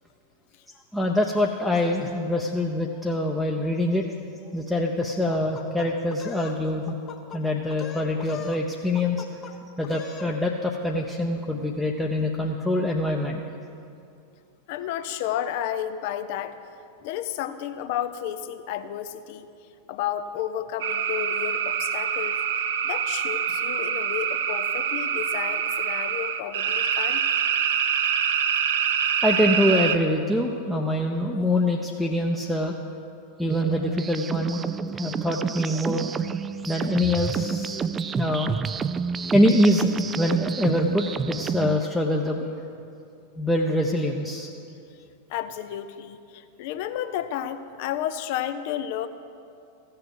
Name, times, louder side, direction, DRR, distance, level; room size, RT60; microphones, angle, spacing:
voice 1, 0.9-4.0 4.5-7.0 7.3-9.3 9.8-13.4 29.2-32.8 33.4-34.6 34.9-36.1 36.7-38.6 39.3-39.9 40.2-42.5 43.4-44.5, left 1 dB, 5° left, -1 dB, 0.7 m, -24 dB
sound 1, 5.3-6.6 6.9-7.4 7.7-8.6 8.9-9.5 9.8-10.3, left 7 dB, 30° left, 0.9 m, -39 dB
voice 2, 14.7-16.6 17.0-19.5 19.9-22.4 22.8-27.2 45.3-49.1, left 11 dB, 50° left, 11 dB, 0.6 m, -32 dB
sound 2, 20.8-30.0, right 8 dB, 60° right, 0.6 m, -25 dB
sound 3, 33.5-41.8, right 6 dB, 20° right, 0.3 m, -30 dB
15.0 x 6.7 x 7.7 m, 2.5 s
figure-of-eight pair, 90°, 0 cm